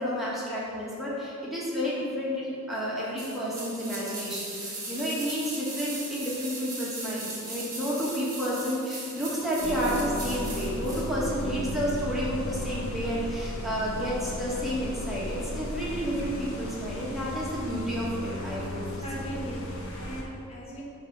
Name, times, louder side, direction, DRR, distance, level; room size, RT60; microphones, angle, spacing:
voice 1, 0.0-19.2, equal, ahead, -8 dB, 1.7 m, -31 dB
sound 1, 3.2-11.1 11.4-11.5, right 2 dB, 15° right, 1.7 m, -38 dB
sound 2, 9.6-20.2, equal, 75° left, 1.4 m, -35 dB
voice 2, 19.0-20.8, right 1 dB, 30° left, -6 dB, 1.6 m, -39 dB
10.5 x 3.6 x 5.6 m, 2.6 s
head